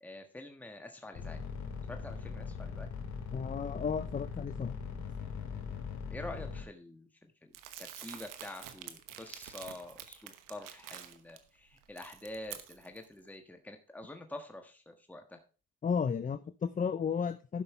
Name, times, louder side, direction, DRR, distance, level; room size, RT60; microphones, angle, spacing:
voice 1, 0.0-1.4 1.9-2.9 6.1-15.4, left 1 dB, 5° left, 4 dB, 1.4 m, -47 dB
sound 1, 1.1-6.6, left 6 dB, 60° left, 2.7 m, -40 dB
voice 2, 3.3-4.8 15.8-17.6, left 6 dB, 25° left, 12 dB, 0.5 m, -33 dB
Crumpling crinkling, 7.5-11.4 11.8-13.1, right 11 dB, 85° right, 1.1 m, -48 dB
12.0 x 5.6 x 4.4 m, 0.35 s
cardioid pair, 85°, 31 cm